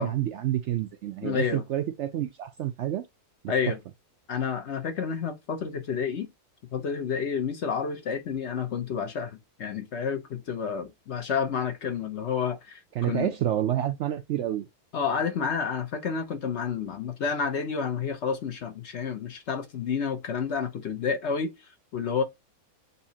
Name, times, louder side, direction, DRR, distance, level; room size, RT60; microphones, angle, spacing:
voice 1, 0.0-3.0 13.0-14.6, right 12 dB, 65° right, 0.7 m, -28 dB
voice 2, 1.2-1.6 3.5-3.8 4.3-6.3 6.7-13.3 14.9-22.2, left 6 dB, 55° left, 0.9 m, -30 dB
6.9 x 2.7 x 2.7 m
omnidirectional pair, 1.6 m